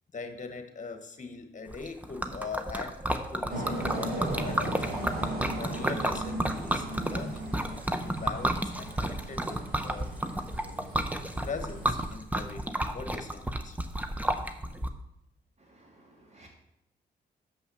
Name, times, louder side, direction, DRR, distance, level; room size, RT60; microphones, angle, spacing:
voice 1, 0.1-3.0 3.3-5.0 5.5-10.1 11.4-13.8, left 4 dB, 45° left, 7 dB, 1.3 m, -41 dB
Liquid, 1.7-14.9, right 1 dB, 10° right, 0.8 m, -32 dB
sound 1, 3.5-12.1, right 1 dB, 60° right, 2.9 m, -37 dB
voice 2, 15.6-16.5, right 2 dB, 40° right, -1 dB, 2.8 m, -57 dB
6.8 x 5.6 x 7.0 m, 0.78 s
cardioid pair, 80°, 18 cm